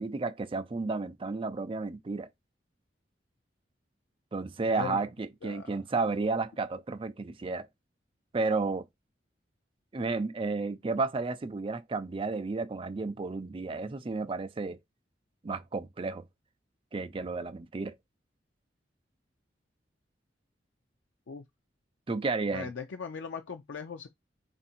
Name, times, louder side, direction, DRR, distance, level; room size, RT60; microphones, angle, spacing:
voice 1, 0.0-2.3 4.3-7.7 8.3-8.9 9.9-14.8 15.4-16.2 16.9-18.0 22.1-22.7, right 3 dB, 30° right, 0.4 m, -32 dB
voice 2, 4.7-5.1 5.4-5.7 21.3-21.4 22.5-24.1, left 6 dB, 90° left, 0.5 m, -39 dB
3.5 x 2.6 x 4.3 m
head